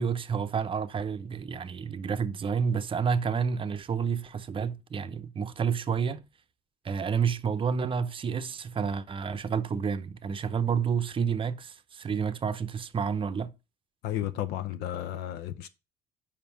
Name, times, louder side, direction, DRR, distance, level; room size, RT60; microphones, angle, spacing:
voice 1, 0.0-6.2 6.8-13.5, right 6 dB, 30° right, 0.6 m, -29 dB
voice 2, 14.0-15.7, left 12 dB, 85° left, 0.6 m, -33 dB
5.3 x 5.1 x 5.7 m
cardioid pair, 110°, 17 cm